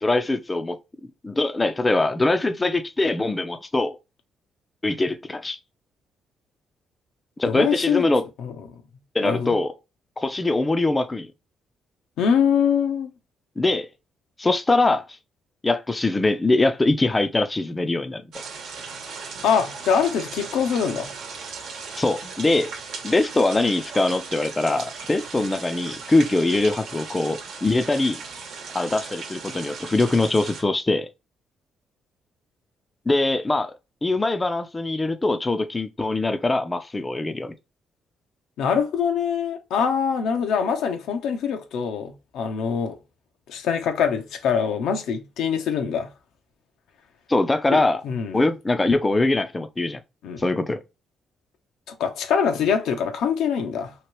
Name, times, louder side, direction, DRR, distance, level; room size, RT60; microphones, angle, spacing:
voice 1, 0.0-4.0 4.8-5.6 7.4-8.3 9.1-9.7 10.2-11.3 13.6-13.9 14.4-15.2 15.6-18.2 22.0-22.7 23.0-28.2 28.7-31.1 33.1-33.7 34.0-37.5 47.3-48.0 48.3-50.0 50.4-50.8, left 2 dB, 20° left, 0.4 m, -22 dB
voice 2, 7.5-8.1 8.4-8.6 9.2-9.5 12.2-13.1 19.4-21.1 38.6-43.0 43.5-46.1 47.7-48.4 50.2-50.4 51.9-53.9, left 7 dB, 85° left, 0.7 m, -24 dB
sound 1, 18.3-30.6, right 5 dB, 75° right, 1.0 m, -37 dB
2.9 x 2.9 x 3.0 m
cardioid pair, 90°, 0 cm